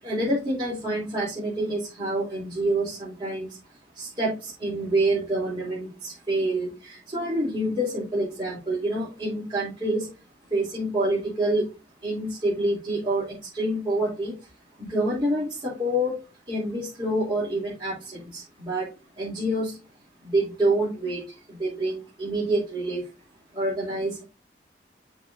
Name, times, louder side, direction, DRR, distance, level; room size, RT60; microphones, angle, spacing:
voice 1, 0.0-3.6 3.9-10.1 10.5-11.6 12.0-14.5 14.8-16.2 16.5-18.9 19.1-19.8 20.2-23.0 23.5-24.2, right 1 dB, 30° right, -9 dB, 3.2 m, -27 dB
8.2 x 6.5 x 2.6 m, 0.33 s
head